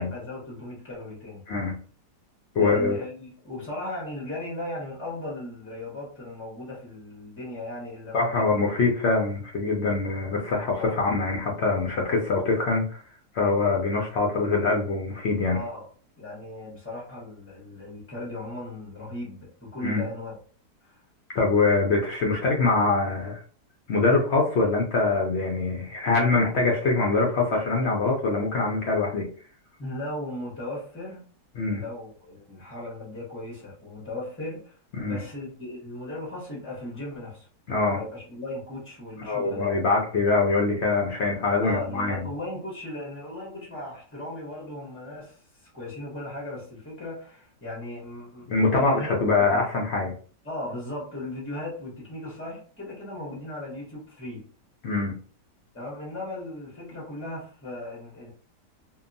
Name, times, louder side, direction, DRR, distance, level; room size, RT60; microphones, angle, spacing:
voice 1, 0.0-1.5 2.6-8.6 10.8-11.0 15.5-15.9 16.2-20.3 20.8-21.0 29.8-31.2 31.7-37.5 37.8-39.7 41.6-49.6 50.4-54.5 55.7-58.3, left 1 dB, 15° left, -4 dB, 0.4 m, -37 dB
voice 2, 2.5-3.0 8.1-13.0 13.3-15.6 19.8-20.0 21.3-23.4 23.9-29.3 31.6-31.8 35.0-35.2 37.7-38.0 39.2-42.2 48.5-50.1 54.8-55.2, left 3 dB, 75° left, 0 dB, 0.6 m, -24 dB
2.8 x 2.2 x 2.5 m, 0.42 s
omnidirectional pair, 1.8 m